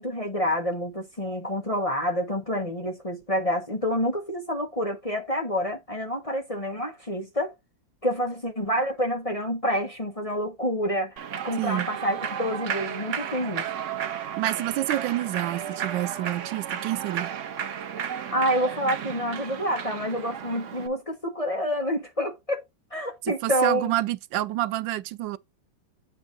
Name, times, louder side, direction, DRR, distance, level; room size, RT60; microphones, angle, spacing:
voice 1, 0.0-7.5 8.0-11.2 11.4-13.7 18.3-22.6 22.9-23.9, equal, 25° left, 1.0 m, -28 dB
Human voice / Clapping / Cheering, 11.2-20.9, right 8 dB, 55° right, 0.9 m, -33 dB
voice 2, 11.6-11.9 14.4-17.3 23.2-25.4, right 15 dB, 90° right, 1.3 m, -28 dB
8.2 x 3.3 x 5.2 m
omnidirectional pair, 2.0 m